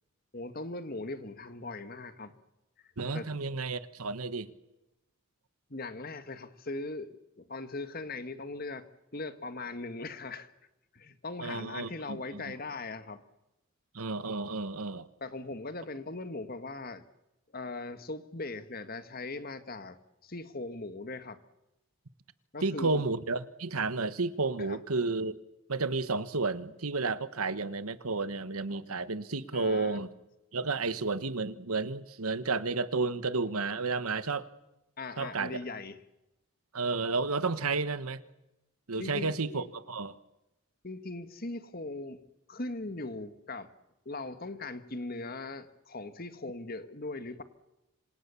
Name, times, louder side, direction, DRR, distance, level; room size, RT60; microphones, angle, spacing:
voice 1, 0.3-2.3 3.1-3.3 5.7-8.9 9.1-10.5 10.9-13.2 15.2-17.0 17.5-21.4 22.5-23.0 24.7-24.8 29.5-30.0 35.0-36.0 39.0-39.7 40.8-42.2 42.5-43.7 44.0-47.4, left 2 dB, 45° left, 1.7 m, -39 dB
voice 2, 3.0-4.5 11.4-12.5 13.9-15.1 22.6-25.3 25.7-30.1 30.5-34.5 35.2-35.5 36.7-38.2 38.9-40.1, right 3 dB, 90° right, 1.4 m, -32 dB
27.0 x 26.5 x 7.1 m
head